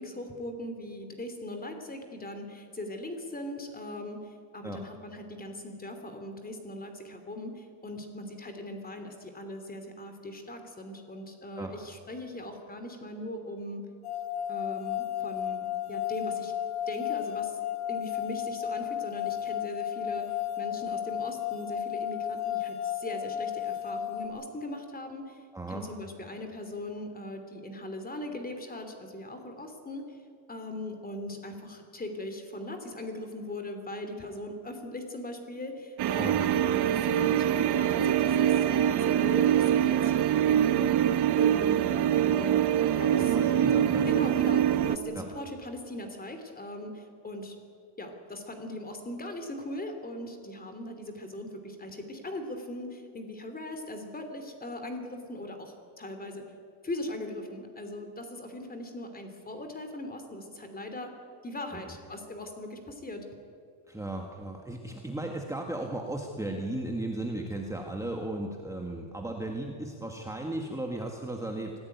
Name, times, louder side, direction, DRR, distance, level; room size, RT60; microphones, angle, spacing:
voice 1, 0.0-13.8 14.5-16.5 16.9-17.6 17.9-20.2 20.6-25.4 25.7-30.2 30.5-40.8 41.4-43.3 44.0-47.6 48.0-56.4 56.8-61.1 61.4-63.2, left 1 dB, 15° left, 6 dB, 3.1 m, -40 dB
sound 1, 14.0-24.3, left 10 dB, 85° left, 4.3 m, -33 dB
voice 2, 25.5-25.8 36.2-36.6 43.2-44.1 45.1-45.2 61.7-61.9 63.9-71.7, right 1 dB, 5° right, 1 dB, 1.7 m, -35 dB
sound 2, 36.0-45.0, right 10 dB, 50° right, 1.1 m, -24 dB
24.5 x 16.5 x 9.4 m, 2.3 s
cardioid pair, 150°, 50 cm